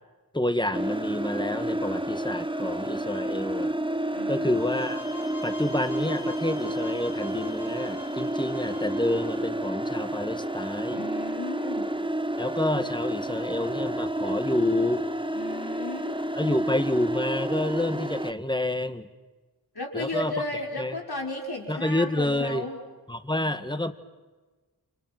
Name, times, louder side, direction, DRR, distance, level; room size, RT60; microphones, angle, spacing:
voice 1, 0.3-3.7 4.3-5.0 5.4-11.0 12.4-15.0 16.4-19.1 19.9-20.3 20.8-21.0 21.7-22.7 23.1-23.9, left 1 dB, 10° left, 10 dB, 1.9 m, -28 dB
sound 1, 0.7-18.3, right 1 dB, 15° right, 1.4 m, -30 dB
voice 2, 4.1-4.6 10.9-11.9 15.3-16.2 19.7-22.8, left 2 dB, 80° left, 0 dB, 5.8 m, -34 dB
sound 2, 4.5-9.4, left 4 dB, 50° left, 8.0 m, -45 dB
29.5 x 28.5 x 6.1 m, 1.3 s
wide cardioid pair, 45°, 38 cm